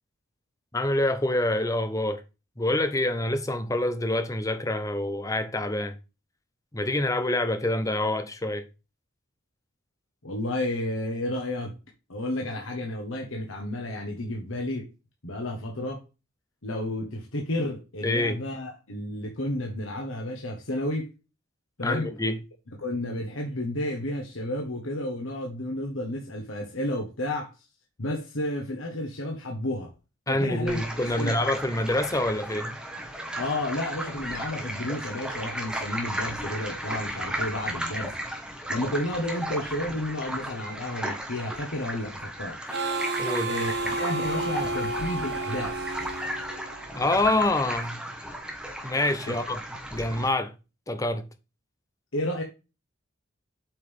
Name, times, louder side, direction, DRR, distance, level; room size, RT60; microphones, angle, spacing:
voice 1, 0.7-2.2 2.6-5.9 6.7-8.6 18.0-18.4 21.8-22.4 30.3-32.8 43.2-43.5 46.9-48.1 48.8-49.6 49.9-50.5 50.9-51.3, left 1 dB, 15° left, 0.8 m, -26 dB
voice 2, 10.2-11.7 12.1-14.9 15.2-16.0 16.6-21.1 21.8-22.1 22.8-27.5 28.0-29.9 30.3-31.4 33.3-38.1 38.5-42.8 43.5-45.9 49.3-49.4 52.1-52.4, left 1 dB, 90° left, 1.5 m, -31 dB
sound 1, 30.7-50.3, right 1 dB, 5° right, 1.4 m, -35 dB
Harmonica, 42.7-47.2, right 2 dB, 55° right, 1.5 m, -31 dB
7.9 x 5.5 x 3.6 m
head